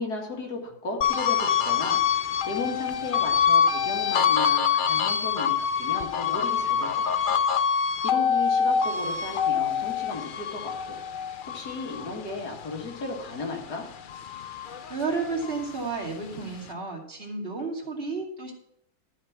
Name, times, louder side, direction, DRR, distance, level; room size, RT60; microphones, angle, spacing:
voice 1, 0.0-11.0 11.5-13.9, left 3 dB, 90° left, 0 dB, 2.6 m, -35 dB
sound 1, 1.0-13.6 14.0-15.7, left 7 dB, 75° left, 0.4 m, -25 dB
voice 2, 14.9-18.5, right 4 dB, 35° right, 0 dB, 2.7 m, -32 dB
13.0 x 5.1 x 7.3 m, 0.72 s
omnidirectional pair, 1.7 m